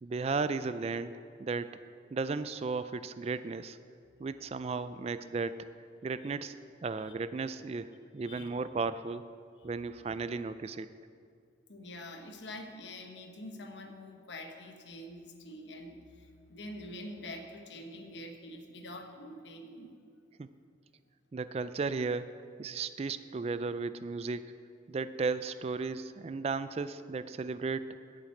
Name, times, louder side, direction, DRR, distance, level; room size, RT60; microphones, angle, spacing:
voice 1, 0.0-1.8 2.1-3.8 4.2-5.7 6.0-6.6 6.8-9.3 9.6-10.9 20.4-20.5 21.3-22.3 22.6-24.5 24.9-27.9, right 4 dB, 35° right, 13 dB, 0.3 m, -35 dB
voice 2, 11.7-20.0, left 1 dB, 75° left, 5 dB, 1.2 m, -46 dB
9.0 x 7.4 x 8.4 m, 2.3 s
head